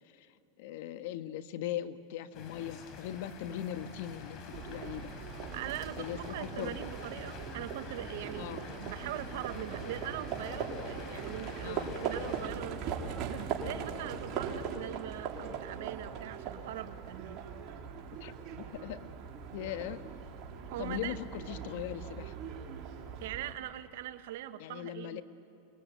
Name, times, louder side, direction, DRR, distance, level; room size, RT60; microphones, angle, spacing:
voice 1, 0.6-5.1 6.0-6.8 8.4-8.6 11.6-11.9 18.2-19.1 19.5-20.0 20.8-22.3 24.6-25.2, left 11 dB, 65° left, 10 dB, 1.3 m, -40 dB
sound 1, 2.3-12.5, left 5 dB, 50° left, 4.6 m, -47 dB
Livestock farm animals working animals, 4.5-23.5, right 6 dB, 45° right, 3.5 m, -40 dB
voice 2, 5.5-8.5 8.8-17.4 20.7-21.2 23.2-25.2, right 13 dB, 70° right, 11 dB, 1.1 m, -41 dB
29.0 x 22.0 x 9.3 m, 2.6 s
hypercardioid pair, 120°, 0 cm